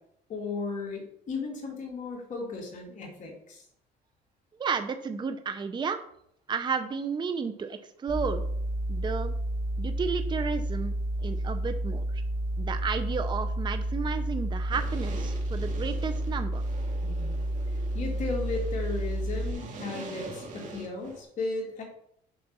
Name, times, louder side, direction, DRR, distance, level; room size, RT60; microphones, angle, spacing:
voice 1, 0.3-3.6 17.0-17.4 17.9-21.8, left 3 dB, 45° left, -1 dB, 3.0 m, -35 dB
voice 2, 4.6-6.0 6.5-8.4 8.9-9.4 9.8-10.9 11.2-12.2 12.6-16.6, right 5 dB, 25° right, 8 dB, 0.7 m, -32 dB
sound 1, 8.1-19.5, right 1 dB, 10° right, 4.0 m, -31 dB
sound 2, 14.7-21.2, right 3 dB, 50° right, 2.2 m, -44 dB
6.8 x 5.8 x 5.5 m, 0.69 s
cardioid pair, 110°, 17 cm